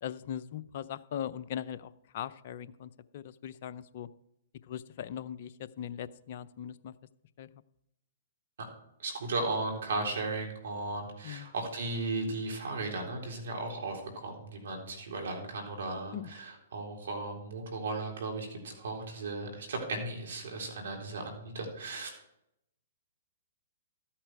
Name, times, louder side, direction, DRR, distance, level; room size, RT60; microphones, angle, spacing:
voice 1, 0.0-4.1 4.7-6.9 7.4-7.5 11.2-11.5 16.1-16.3, left 10 dB, 55° left, 12 dB, 0.6 m, -40 dB
voice 2, 9.0-22.1, right 2 dB, 70° right, 1 dB, 3.7 m, -36 dB
13.0 x 8.8 x 4.8 m, 0.80 s
hypercardioid pair, 125°, 0 cm